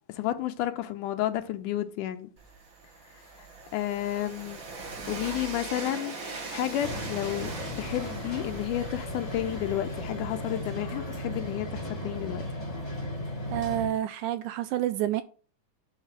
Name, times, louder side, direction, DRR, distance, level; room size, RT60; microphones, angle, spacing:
voice 1, 0.1-2.3 3.7-6.1 6.5-12.4, left 13 dB, 80° left, 2.2 m, -31 dB
Train, 2.4-12.2, right 3 dB, 50° right, 0.9 m, -41 dB
sound 1, 6.8-13.9, left 1 dB, 10° left, 1.5 m, -36 dB
voice 2, 13.5-15.2, right 13 dB, 80° right, 1.8 m, -28 dB
9.3 x 4.1 x 7.3 m
omnidirectional pair, 3.8 m